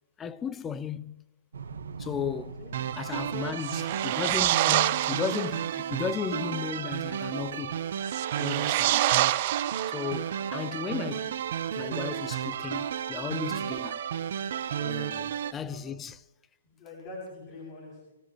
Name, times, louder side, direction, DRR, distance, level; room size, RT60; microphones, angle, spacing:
voice 1, 0.2-1.2 2.0-2.6 3.0-7.8 8.4-9.4 9.9-11.4 11.7-14.0 14.8-16.2, left 7 dB, 15° left, 0.6 m, -35 dB
sound 1, 1.5-15.7, right 5 dB, 80° right, 1.5 m, -47 dB
sound 2, 2.7-15.5, right 9 dB, 60° right, 0.9 m, -33 dB
voice 2, 3.1-4.1 8.5-8.8 12.8-12.9 14.7-15.2 15.7-15.8 16.6-18.1, left 2 dB, 35° left, 7.6 m, -46 dB
sound 3, 3.6-5.6 8.0-10.4, right 16 dB, 45° right, 0.5 m, -27 dB
23.5 x 17.5 x 3.2 m
hypercardioid pair, 130°, 0 cm